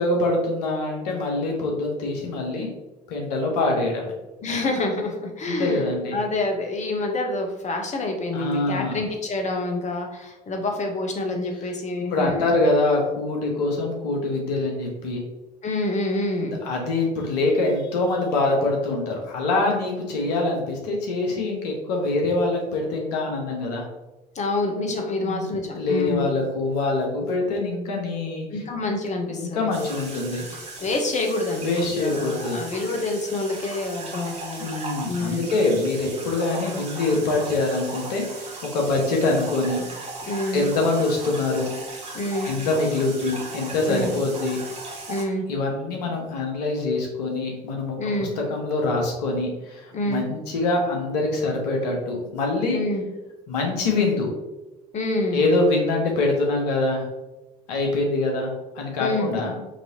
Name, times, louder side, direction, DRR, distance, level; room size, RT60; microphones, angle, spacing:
voice 1, 0.0-2.7 3.1-4.1 5.5-6.2 8.3-9.0 12.1-15.2 16.4-23.9 25.2-28.6 29.3-30.5 31.6-32.6 34.6-39.8 40.5-41.7 42.4-44.6 45.5-52.8 53.5-54.3 55.3-57.1 57.7-59.6, left 2 dB, 70° left, 0 dB, 1.1 m, -24 dB
voice 2, 4.4-12.5 15.6-16.6 24.3-26.3 28.5-29.7 30.5-34.7 35.1-35.5 40.2-40.7 42.1-42.5 43.9-44.1 45.1-45.4 48.0-48.3 49.9-50.2 52.7-53.0 54.9-55.5 59.0-59.3, left 2 dB, 35° left, 3 dB, 1.0 m, -27 dB
sound 1, 29.7-45.2, right 3 dB, 30° right, 1.4 m, -37 dB
6.0 x 2.9 x 2.9 m, 1.1 s
figure-of-eight pair, 60°, 21 cm